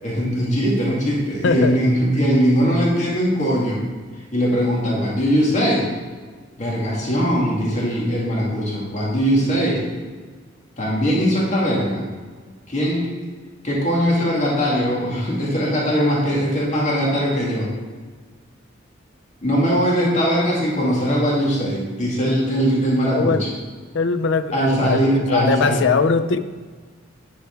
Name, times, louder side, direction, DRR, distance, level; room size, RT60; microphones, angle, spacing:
voice 1, 0.0-3.8 4.3-5.9 6.6-9.8 10.8-12.0 12.7-13.1 13.6-17.7 19.4-23.5 24.5-25.8, equal, 35° left, -4 dB, 2.1 m, -20 dB
voice 2, 1.4-1.8 23.1-23.4 23.9-25.0 25.3-26.4, left 5 dB, 65° left, 11 dB, 0.5 m, -20 dB
10.5 x 4.6 x 4.5 m, 1.5 s
head